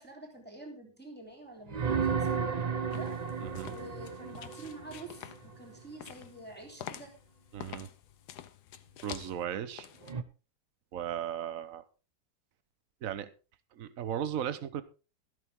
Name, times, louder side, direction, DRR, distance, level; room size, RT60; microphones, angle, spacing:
voice 1, 0.0-3.1 3.6-7.1, right 1 dB, 5° left, 0 dB, 3.4 m, -48 dB
sound 1, 1.7-5.5 10.0-10.2, right 6 dB, 40° right, 0.6 m, -33 dB
sound 2, 2.9-10.1, left 10 dB, 70° left, 1.3 m, -48 dB
voice 2, 7.5-7.9 9.0-9.9 10.9-11.8 13.0-13.3 13.7-14.8, right 9 dB, 55° right, 14 dB, 1.3 m, -36 dB
13.5 x 12.5 x 3.6 m, 0.33 s
omnidirectional pair, 1.8 m